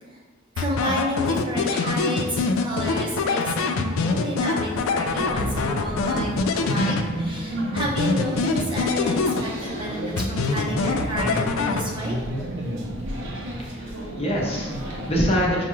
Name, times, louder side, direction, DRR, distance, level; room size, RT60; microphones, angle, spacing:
voice 1, 0.5-12.2, equal, 25° right, -4 dB, 0.7 m, -30 dB
sound 1, 0.6-7.4 7.8-9.8 10.2-12.2, left 4 dB, 70° left, 0.3 m, -25 dB
sound 2, 4.9-15.1, right 1 dB, 60° right, 0.7 m, -32 dB
voice 2, 13.6-15.6, equal, 30° left, -4 dB, 0.8 m, -25 dB
5.8 x 2.3 x 3.0 m, 1.3 s
head